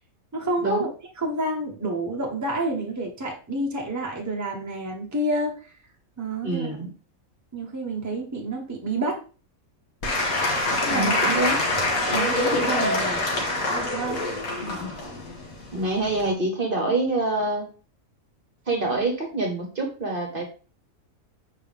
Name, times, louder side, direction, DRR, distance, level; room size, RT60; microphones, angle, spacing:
voice 1, 0.3-0.9 1.2-5.7 6.2-6.9 7.5-9.2 10.8-11.4 12.0-13.2 13.9-14.3 14.6-15.0, right 1 dB, 15° right, 0 dB, 1.0 m, -29 dB
voice 2, 6.4-6.9 10.9-11.5 15.7-17.7 18.7-20.4, right 2 dB, 40° right, 3 dB, 1.2 m, -26 dB
Applause / Crowd, 10.0-16.3, left 2 dB, 85° left, 1.8 m, -25 dB
7.0 x 4.7 x 3.5 m, 0.37 s
omnidirectional pair, 1.4 m